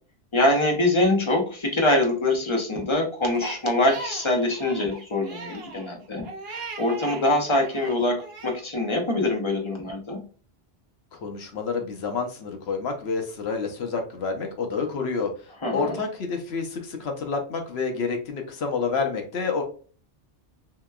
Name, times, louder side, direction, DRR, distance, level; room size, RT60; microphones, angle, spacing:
voice 1, 0.3-10.2 15.6-16.0, left 1 dB, 30° left, 1 dB, 0.6 m, -24 dB
Crying sobbing, 3.3-7.2 7.6-8.6, right 3 dB, 60° right, 0.8 m, -39 dB
voice 2, 11.1-19.6, left 4 dB, 65° left, 4 dB, 0.9 m, -29 dB
2.8 x 2.2 x 2.2 m, 0.40 s
omnidirectional pair, 1.2 m